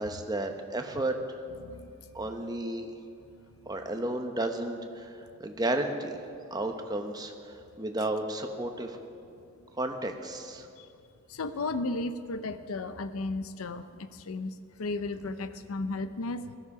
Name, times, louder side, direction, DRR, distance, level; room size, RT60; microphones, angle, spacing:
voice 1, 0.0-1.4 2.1-2.9 3.7-6.2 6.5-9.0 9.8-10.7, right 1 dB, 20° right, 5 dB, 1.0 m, -33 dB
voice 2, 1.6-2.3 10.8-10.9 11.3-16.5, left 2 dB, 80° left, 11 dB, 0.6 m, -35 dB
17.0 x 13.5 x 4.9 m, 2.5 s
head